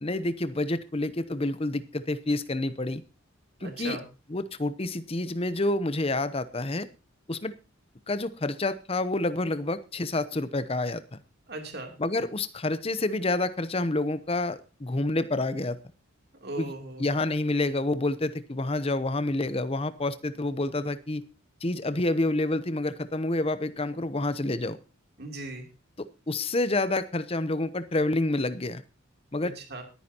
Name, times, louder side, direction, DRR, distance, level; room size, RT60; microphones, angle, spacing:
voice 1, 0.0-3.0 3.6-4.0 4.3-6.9 7.3-7.5 8.1-11.2 12.0-15.8 16.6-16.7 17.0-21.2 21.6-24.8 26.0-28.8 29.3-29.5, left 2 dB, 25° left, 14 dB, 0.7 m, -28 dB
voice 2, 3.6-4.0 11.5-11.9 16.4-17.1 25.2-25.7 29.4-29.8, right 2 dB, 50° right, 3 dB, 3.0 m, -37 dB
22.0 x 9.8 x 2.9 m, 0.31 s
head